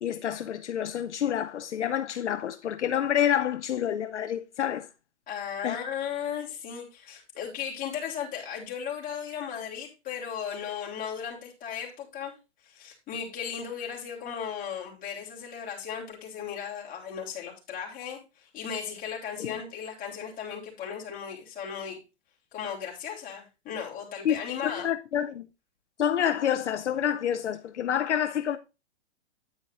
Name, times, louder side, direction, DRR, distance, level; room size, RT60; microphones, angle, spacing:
voice 1, 0.0-4.9 5.6-5.8 19.4-19.6 24.2-25.4 26.0-28.6, left 10 dB, 80° left, 0.8 m, -28 dB
voice 2, 5.3-12.3 12.6-22.0 22.5-24.9, left 8 dB, 25° left, 3.5 m, -36 dB
9.4 x 9.0 x 2.6 m
hypercardioid pair, 125°, 34 cm